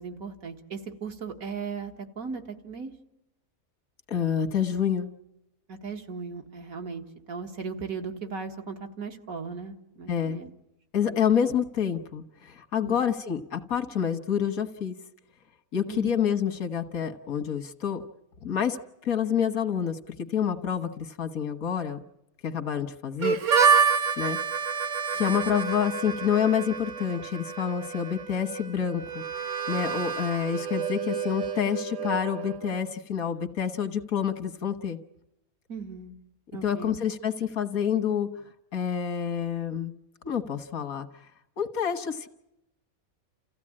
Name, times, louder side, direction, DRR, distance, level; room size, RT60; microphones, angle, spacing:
voice 1, 0.0-2.9 5.7-10.5 11.0-11.2 12.8-13.0 15.9-16.1 35.7-36.2 36.5-37.0, right 5 dB, 90° right, 3 dB, 2.2 m, -37 dB
voice 2, 4.1-5.1 10.1-10.4 10.9-14.9 15.7-18.0 18.4-18.8 19.0-22.0 22.4-23.4 24.2-24.4 25.1-35.0 36.6-38.3 38.7-39.9 40.2-41.1 41.6-42.3, left 8 dB, 90° left, 7 dB, 1.8 m, -28 dB
Harmonica, 23.2-32.8, right 6 dB, 65° right, 1.3 m, -28 dB
29.5 x 15.0 x 8.7 m, 0.91 s
omnidirectional pair, 1.4 m